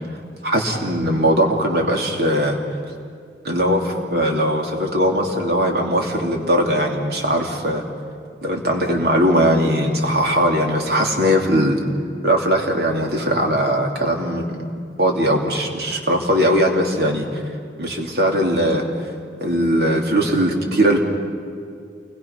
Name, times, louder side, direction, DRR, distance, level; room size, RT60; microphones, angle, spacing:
voice 1, 0.4-2.6 3.4-7.8 8.4-11.8 12.2-14.6 15.0-17.2 17.8-18.8 19.4-21.0, equal, 60° right, 1 dB, 3.0 m, -19 dB
28.5 x 21.0 x 5.9 m, 2.3 s
head